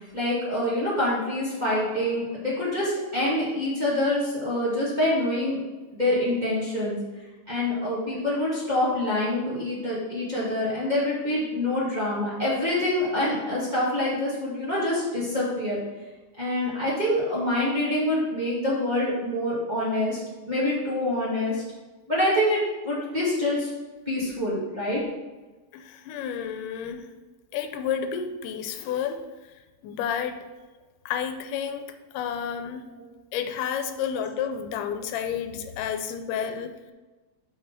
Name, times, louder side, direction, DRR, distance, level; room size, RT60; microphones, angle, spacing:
voice 1, 0.1-5.6 5.9-7.0 7.5-15.8 16.4-20.2 20.5-21.6 22.1-23.7 24.0-25.0 32.7-33.0, left 1 dB, 15° right, -8 dB, 1.6 m, -26 dB
voice 2, 25.7-27.1 27.5-29.2 29.8-30.4 31.1-31.9 32.1-32.9 33.3-36.7, left 8 dB, 85° left, 7 dB, 2.2 m, -30 dB
5.7 x 5.4 x 5.9 m, 1.2 s
omnidirectional pair, 3.7 m